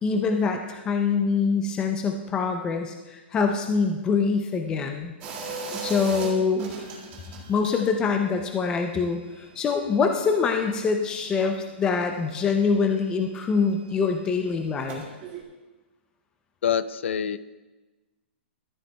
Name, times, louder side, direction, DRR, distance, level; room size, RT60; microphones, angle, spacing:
voice 1, 0.0-5.1 5.8-6.7 7.5-15.1, left 5 dB, 10° left, 4 dB, 0.4 m, -24 dB
sound 1, 5.2-7.9 8.1-11.4 11.6-15.4, right 4 dB, 25° right, 1.8 m, -40 dB
voice 2, 16.6-17.4, left 8 dB, 75° left, 15 dB, 0.5 m, -25 dB
14.0 x 8.9 x 2.2 m, 1.2 s
hypercardioid pair, 165°, 7 cm